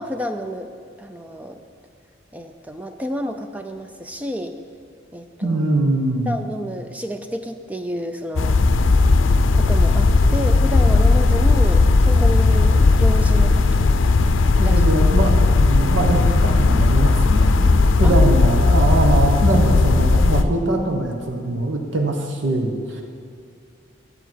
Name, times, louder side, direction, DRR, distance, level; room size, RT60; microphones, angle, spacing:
voice 1, 0.0-1.6 2.3-4.6 5.1-5.6 6.3-8.9 9.6-14.1 14.6-14.8 18.0-18.2, equal, 10° right, 7 dB, 0.4 m, -30 dB
voice 2, 5.4-6.4 14.6-23.0, right 2 dB, 75° right, 3 dB, 1.1 m, -22 dB
sound 1, 8.4-20.4, left 3 dB, 85° left, 0.5 m, -16 dB
13.0 x 7.9 x 4.6 m, 2.4 s
head